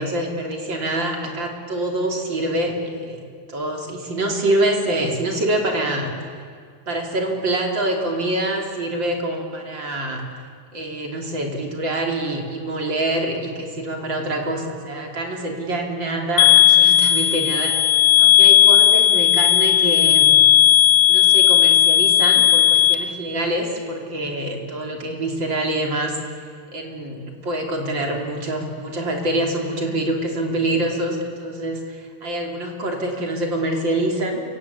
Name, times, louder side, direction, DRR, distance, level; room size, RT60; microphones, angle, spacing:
voice 1, 0.0-6.1 6.9-10.2 10.7-17.7 18.2-20.4 21.1-26.2 26.7-34.4, right 1 dB, 40° right, 1 dB, 3.6 m, -25 dB
sound 1, 16.4-22.9, left 10 dB, 50° left, 1.3 m, -14 dB
29.5 x 17.5 x 8.4 m, 2.1 s
omnidirectional pair, 3.4 m